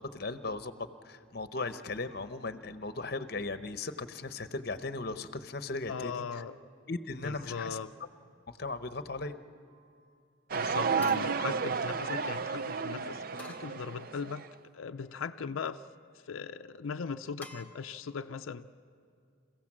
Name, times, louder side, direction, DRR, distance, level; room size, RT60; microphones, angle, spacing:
voice 1, 0.0-6.2 6.9-7.8 8.5-9.4, left 3 dB, 50° left, 10 dB, 0.8 m, -37 dB
voice 2, 5.9-6.6 7.2-7.9 10.5-14.4 14.7-15.8 16.1-18.7, left 5 dB, 85° left, 7 dB, 0.5 m, -39 dB
sound 1, 9.7-10.2 11.0-12.4 13.4-14.5 15.0-15.7 17.4-17.6, left 2 dB, 10° left, 1.2 m, -53 dB
sound 2, 10.5-14.5, right 5 dB, 45° right, 0.5 m, -32 dB
28.5 x 16.0 x 7.4 m, 2.3 s
head